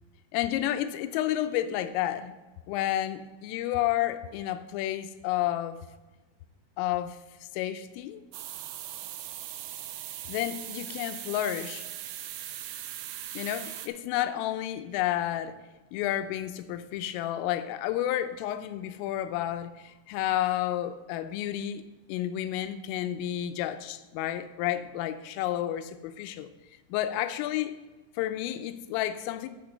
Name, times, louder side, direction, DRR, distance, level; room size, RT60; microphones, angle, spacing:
voice 1, 0.3-2.3 2.7-5.9 6.8-7.2 7.5-8.2 10.3-11.9 13.3-15.6 15.9-21.8 22.1-26.5 26.9-27.8 28.2-29.5, left 12 dB, 85° left, 10 dB, 3.2 m, -31 dB
sound 1, 8.3-13.9, right 12 dB, 85° right, 2.5 m, -39 dB
12.5 x 5.9 x 5.2 m, 1.1 s
omnidirectional pair, 5.8 m